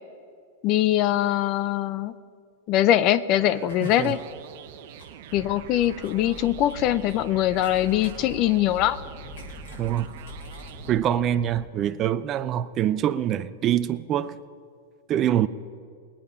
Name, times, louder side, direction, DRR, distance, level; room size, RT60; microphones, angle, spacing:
voice 1, 0.6-2.1 2.7-4.2 5.3-9.0, left 12 dB, 45° left, 0.5 m, -22 dB
sound 1, 2.8-4.5 4.9-7.2 7.5-9.0 9.3-11.1 11.4-11.5, left 2 dB, 80° left, 4.3 m, -52 dB
sound 2, 3.3-10.9, right 11 dB, 60° right, 0.7 m, -45 dB
voice 2, 3.8-4.2 9.8-10.1 10.9-14.4 15.1-15.5, right 11 dB, 35° right, 0.4 m, -24 dB
sound 3, 5.3-11.7, left 1 dB, 15° left, 1.3 m, -43 dB
20.0 x 8.6 x 5.6 m
hypercardioid pair, 125°, 0 cm